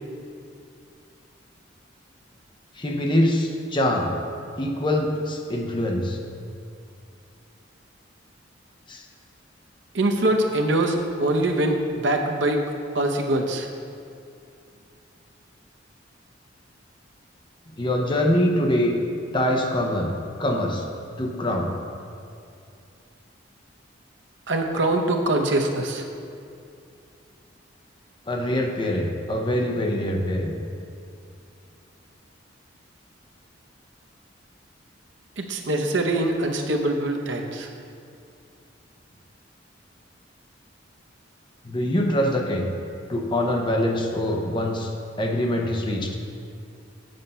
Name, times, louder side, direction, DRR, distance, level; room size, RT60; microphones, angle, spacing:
voice 1, 2.8-4.1 4.6-6.2 8.9-9.0 17.8-19.0 19.3-20.1 20.4-20.8 21.2-21.7 28.3-30.6 41.6-42.7 43.1-44.9 45.2-46.1, left 1 dB, 25° left, 2 dB, 0.7 m, -24 dB
voice 2, 9.9-12.6 12.9-13.7 24.5-26.0 35.4-37.7, right 1 dB, 70° right, 3 dB, 0.8 m, -23 dB
7.8 x 5.6 x 5.4 m, 2.5 s
head